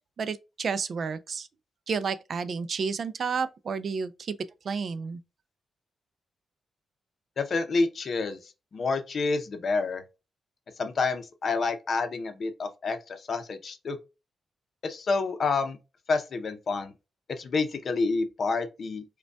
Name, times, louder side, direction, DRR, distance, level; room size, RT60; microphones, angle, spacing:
voice 1, 0.2-1.5 1.9-4.4 4.6-5.2, right 5 dB, 55° right, 0.3 m, -31 dB
voice 2, 7.4-8.4 8.7-10.0 10.8-14.0 14.8-15.8 16.1-16.9 17.4-19.0, left 4 dB, 50° left, 0.6 m, -28 dB
5.0 x 2.2 x 2.2 m
cardioid pair, 115°, 0 cm